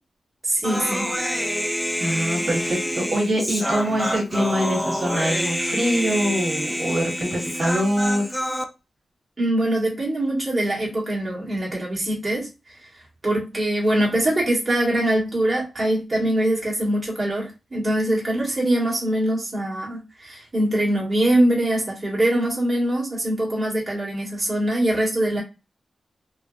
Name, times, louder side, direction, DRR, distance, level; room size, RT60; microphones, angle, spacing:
voice 1, 0.4-1.1 9.4-12.5 13.2-25.4, right 1 dB, 25° right, 1.4 m, -23 dB
Human voice, 0.6-8.6, equal, 5° left, 0.4 m, -27 dB
voice 2, 2.0-8.3, equal, 50° right, 1.3 m, -24 dB
3.1 x 2.5 x 2.3 m
wide cardioid pair, 125°, 0 cm